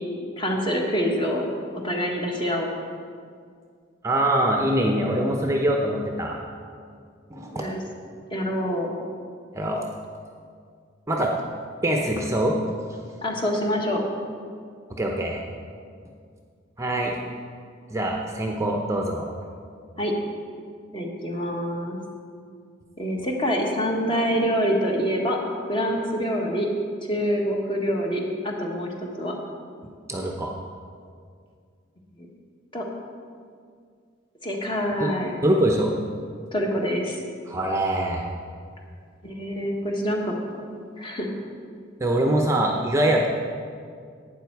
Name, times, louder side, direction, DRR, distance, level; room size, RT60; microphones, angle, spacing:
voice 1, 0.4-1.4 1.8-2.7 7.5-7.8 8.3-8.9 13.2-14.0 20.0-20.1 20.9-22.0 23.0-25.4 25.7-26.7 27.1-28.9 29.2-29.3 32.2-32.3 32.7-32.9 34.4-35.4 36.5-37.2 39.2-40.3 41.0-41.3, equal, 25° left, 0 dB, 1.4 m, -26 dB
voice 2, 4.0-6.4 7.3-7.6 9.5-9.8 11.1-11.3 11.8-12.6 12.9-13.0 15.0-15.4 16.8-17.2 17.9-19.3 30.1-30.5 35.0-35.1 35.4-35.9 37.5-38.2 42.0-43.3, right 1 dB, 15° right, 1 dB, 0.7 m, -23 dB
12.0 x 8.8 x 4.6 m, 2.2 s
head